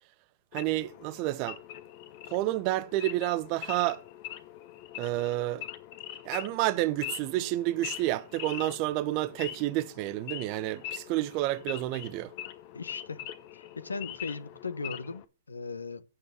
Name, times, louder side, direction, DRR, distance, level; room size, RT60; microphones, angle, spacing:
Wild animals / Idling, 0.5-15.2, left 12 dB, 45° left, 1.1 m, -43 dB
voice 1, 0.5-1.6 2.3-4.0 5.0-5.6 6.2-12.3, right 16 dB, 40° right, 0.9 m, -30 dB
voice 2, 12.7-13.3 13.5-16.0, left 4 dB, 90° left, 0.9 m, -38 dB
8.7 x 6.5 x 6.8 m
hypercardioid pair, 125°, 0 cm